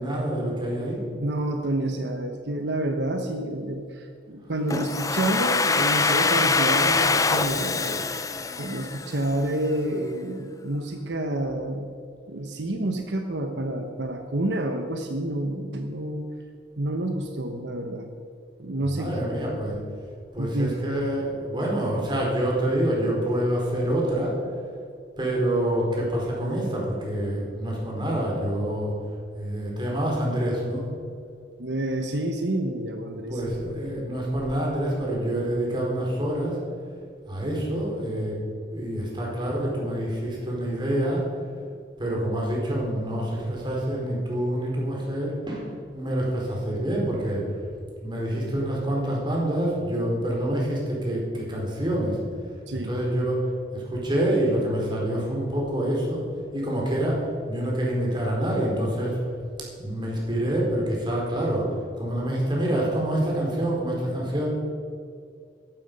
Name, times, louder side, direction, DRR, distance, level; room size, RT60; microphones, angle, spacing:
voice 1, 0.0-1.0 18.9-19.8 20.3-24.4 25.2-28.9 29.4-30.9 33.1-36.6 37.3-38.4 38.7-41.2 42.0-47.5 48.0-52.2 52.7-56.2 56.5-59.2 59.8-64.5, right 1 dB, 25° right, -3 dB, 4.3 m, -27 dB
voice 2, 1.1-8.1 8.6-11.9 12.3-16.2 16.8-18.1 18.6-19.2 20.4-20.8 31.6-33.8 52.7-52.9, right 1 dB, 75° right, 5 dB, 1.1 m, -29 dB
Domestic sounds home sounds, 4.7-9.5, left 4 dB, 20° left, 0.6 m, -24 dB
14.0 x 12.0 x 5.4 m, 2.3 s
head